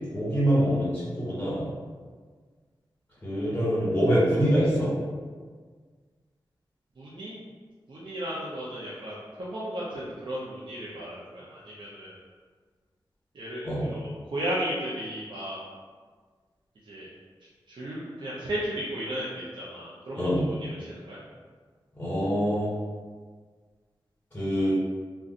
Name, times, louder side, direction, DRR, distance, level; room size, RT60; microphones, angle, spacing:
voice 1, 0.1-1.6 3.2-4.9 13.6-13.9 20.2-20.4 22.0-22.7 24.3-24.7, equal, 25° left, -10 dB, 1.4 m, -25 dB
voice 2, 7.0-7.4 7.9-12.2 13.3-15.6 16.9-17.1 17.7-21.2, equal, 60° right, -7 dB, 0.6 m, -35 dB
2.4 x 2.2 x 3.8 m, 1.5 s
cardioid pair, 50°, 9 cm